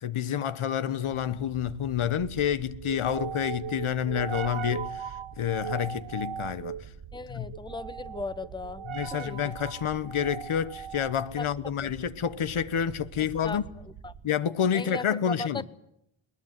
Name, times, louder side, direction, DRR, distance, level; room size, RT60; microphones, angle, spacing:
voice 1, 0.0-6.8 7.3-7.5 8.9-13.6 14.2-15.6, left 9 dB, 80° left, 1.2 m, -29 dB
sound 1, 1.0-14.4, right 8 dB, 70° right, 1.3 m, -40 dB
voice 2, 7.1-8.8 9.1-9.5 11.4-11.5 11.8-11.9 13.2-13.6 14.0-14.1 14.7-15.7, left 3 dB, 10° left, 0.8 m, -37 dB
20.5 x 20.5 x 9.4 m
wide cardioid pair, 120°, 49 cm